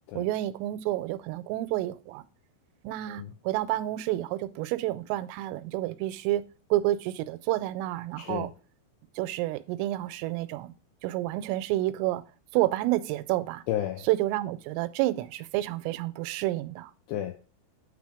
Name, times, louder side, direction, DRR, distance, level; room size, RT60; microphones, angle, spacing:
voice 1, 0.2-2.2 2.8-6.4 6.7-8.5 9.2-10.7 11.0-12.2 12.5-13.6 14.1-16.9, right 16 dB, 85° right, 3.1 m, -29 dB
voice 2, 8.2-8.5 13.7-14.1 17.1-17.4, left 12 dB, 85° left, 2.5 m, -32 dB
9.0 x 4.0 x 4.9 m
omnidirectional pair, 5.8 m